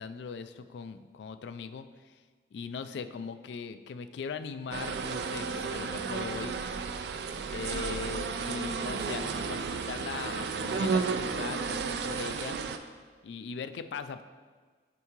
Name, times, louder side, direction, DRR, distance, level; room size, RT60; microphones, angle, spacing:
voice 1, 0.0-2.2 2.5-6.6 7.4-12.6 13.2-14.2, left 5 dB, 80° left, 11 dB, 0.3 m, -40 dB
sound 1, 4.7-12.8, right 5 dB, 70° right, 0.4 m, -33 dB
8.0 x 4.6 x 2.9 m, 1.5 s
head